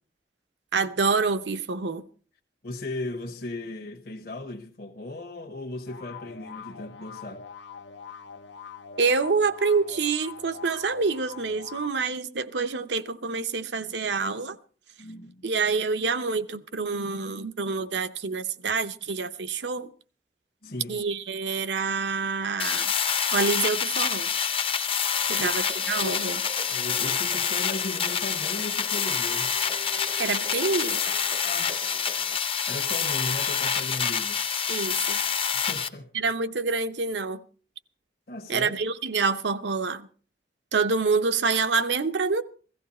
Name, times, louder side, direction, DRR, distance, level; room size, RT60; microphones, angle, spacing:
voice 1, 0.7-2.0 9.0-14.6 15.4-19.9 20.9-22.9 23.3-24.3 25.3-26.4 30.2-31.0 34.7-35.2 36.1-37.4 38.5-40.1 40.7-42.4, right 4 dB, 85° right, 0.8 m, -27 dB
voice 2, 2.6-7.4 15.0-15.4 20.6-21.0 25.3-25.5 26.0-26.2 26.5-29.6 31.4-31.7 32.7-34.4 35.5-36.1 38.3-38.7, left 2 dB, 55° left, 1.2 m, -36 dB
sound 1, 5.9-11.9, left 6 dB, 90° left, 0.8 m, -43 dB
sound 2, 22.6-35.9, left 7 dB, 35° left, 0.7 m, -27 dB
sound 3, 25.1-32.4, right 3 dB, 35° right, 0.6 m, -44 dB
16.0 x 14.5 x 4.2 m
head